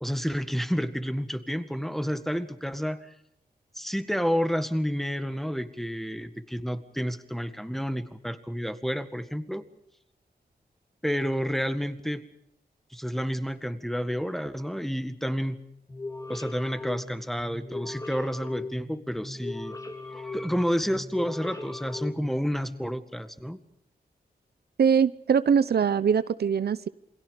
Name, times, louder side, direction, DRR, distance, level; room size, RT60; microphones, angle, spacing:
voice 1, 0.0-3.1 3.8-9.6 11.0-12.2 12.9-15.6 16.3-19.8 20.1-23.6, equal, ahead, 10 dB, 1.8 m, -30 dB
sound 1, 15.9-22.8, left 3 dB, 20° left, 3.1 m, -39 dB
voice 2, 24.8-26.9, right 7 dB, 75° right, 16 dB, 0.8 m, -22 dB
28.5 x 22.5 x 5.2 m, 0.77 s
wide cardioid pair, 95°, 17 cm